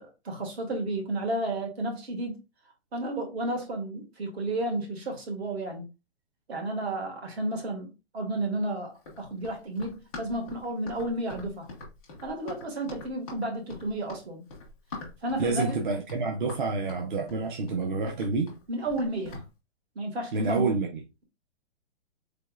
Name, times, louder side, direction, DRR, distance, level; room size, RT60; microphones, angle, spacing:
voice 1, 0.0-2.4 2.9-5.9 6.5-11.7 12.2-14.4 15.2-15.8 18.7-19.4 19.9-20.7, right 1 dB, 65° right, 1.7 m, -32 dB
Run, 9.0-19.5, left 3 dB, ahead, 0.4 m, -44 dB
voice 2, 15.4-18.6 20.3-21.0, right 3 dB, 45° right, 0.6 m, -28 dB
4.1 x 3.4 x 2.3 m
hypercardioid pair, 180°, 35 cm